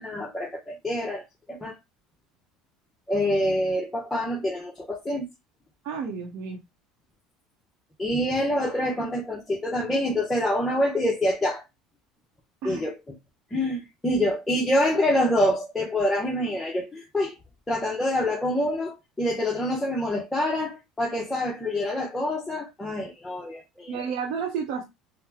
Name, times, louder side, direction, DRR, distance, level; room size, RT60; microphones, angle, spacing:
voice 1, 0.0-1.8 3.1-5.3 8.0-11.6 12.6-13.0 13.5-17.4 17.7-24.0, left 1 dB, 10° left, 0.7 m, -26 dB
voice 2, 5.8-6.6 12.6-12.8 23.9-24.8, right 6 dB, 70° right, 0.7 m, -31 dB
3.9 x 2.0 x 2.7 m
supercardioid pair, 110°, 0 cm